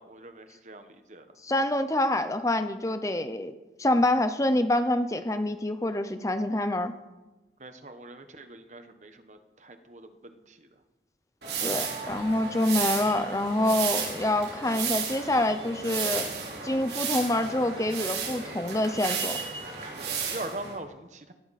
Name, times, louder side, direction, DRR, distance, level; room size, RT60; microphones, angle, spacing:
voice 1, 0.0-1.3 7.6-10.7 19.8-21.3, right 2 dB, 40° right, 8 dB, 1.2 m, -42 dB
voice 2, 1.4-3.5 3.8-6.9 11.6-16.2 16.6-19.4, left 1 dB, 20° left, 9 dB, 0.7 m, -26 dB
sound 1, 11.4-20.8, right 6 dB, 70° right, 4.1 m, -33 dB
19.0 x 13.5 x 4.2 m, 1.1 s
head